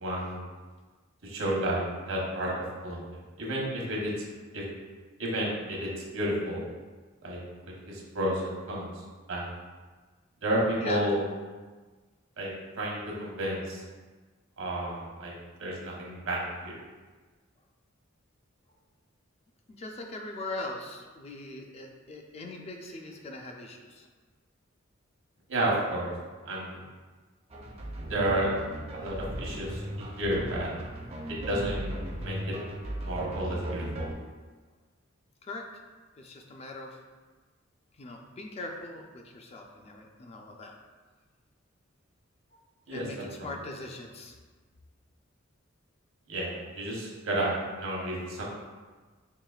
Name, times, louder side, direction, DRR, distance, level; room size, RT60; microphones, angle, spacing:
voice 1, 0.0-0.5 1.2-1.8 2.1-2.5 2.8-4.1 4.5-4.6 5.2-6.6 7.2-7.4 7.9-8.9 9.3-9.5 10.4-11.2 12.4-12.5 12.8-13.8 14.6-15.3 15.6-16.7 25.5-26.1 26.4-26.8 28.1-28.5 28.9-30.7 31.3-32.5 33.0-34.1 42.9-43.0 43.4-43.5 46.3-48.4, right 1 dB, 80° right, -3 dB, 0.9 m, -31 dB
voice 2, 19.7-24.1 35.4-35.7 36.2-37.0 38.0-40.7 42.9-44.3, left 2 dB, 30° left, 2 dB, 0.4 m, -41 dB
sound 1, 27.5-34.1, right 1 dB, 30° right, 0.4 m, -37 dB
4.8 x 2.9 x 2.3 m, 1.4 s
head